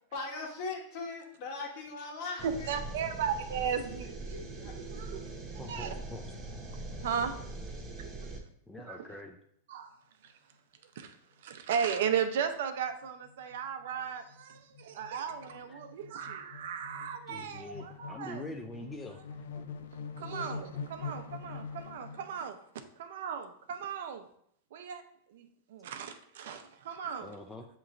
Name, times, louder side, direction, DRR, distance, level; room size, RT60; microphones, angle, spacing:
voice 1, 0.1-2.7 4.0-4.7 6.9-7.1, left 3 dB, 55° left, -1 dB, 1.4 m, -40 dB
sound 1, 2.4-8.4, right 2 dB, 25° right, 0.8 m, -42 dB
voice 2, 2.4-4.4 4.9-5.4 5.7-5.9 7.0-7.4 8.9-9.2 9.7-9.9 10.2-10.3 11.0-18.4 20.2-22.6 23.0-24.3 24.7-25.0 25.3-27.4, right 7 dB, 75° right, 8 dB, 0.5 m, -36 dB
voice 3, 5.6-6.2 8.7-9.4 13.9-14.0 15.7-15.8 17.3-19.2 27.2-27.7, left 1 dB, 10° left, 2 dB, 0.4 m, -44 dB
sound 2, 11.8-12.1 12.4-12.6 12.8-22.5, left 5 dB, 85° left, 0.4 m, -45 dB
7.1 x 3.0 x 2.5 m, 0.68 s
hypercardioid pair, 125°, 0 cm